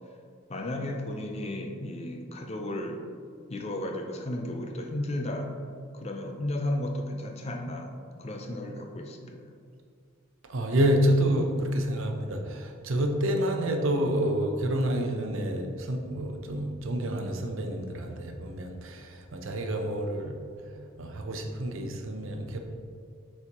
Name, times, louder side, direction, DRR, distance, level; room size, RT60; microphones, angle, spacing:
voice 1, 0.5-3.1 3.5-5.6 5.9-9.4, left 1 dB, 30° left, 3 dB, 0.4 m, -34 dB
voice 2, 10.5-20.5 21.0-22.6, right 1 dB, 65° right, 4 dB, 0.6 m, -28 dB
7.9 x 4.4 x 2.9 m, 2.2 s
head